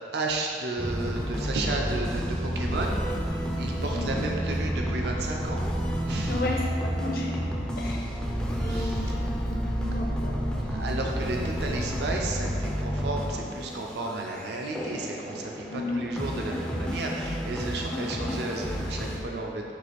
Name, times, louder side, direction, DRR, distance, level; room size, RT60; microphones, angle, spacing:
voice 1, 0.0-3.0 3.3-5.6 6.1-6.4 8.7-9.3 10.6-19.7, right 2 dB, 70° right, 1 dB, 0.4 m, -33 dB
sound 1, 0.8-19.2, equal, 5° left, 0.3 m, -30 dB
voice 2, 3.7-4.1 6.3-7.3 7.8-8.0 8.6-10.4 15.7-16.3 18.0-18.1, left 2 dB, 55° left, -1 dB, 0.6 m, -33 dB
4.8 x 2.4 x 4.0 m, 2.4 s
head